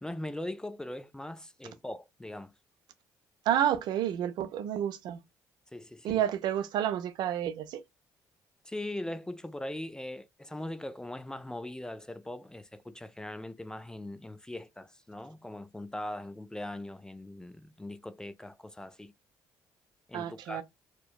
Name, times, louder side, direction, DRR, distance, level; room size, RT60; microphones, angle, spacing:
voice 1, 0.0-2.5 5.7-6.2 8.6-19.1 20.1-20.6, left 1 dB, 10° left, 0.3 m, -40 dB
voice 2, 3.5-5.2 6.0-7.8 20.1-20.6, right 10 dB, 70° right, 0.4 m, -30 dB
2.6 x 2.1 x 2.2 m
supercardioid pair, 70°, 8 cm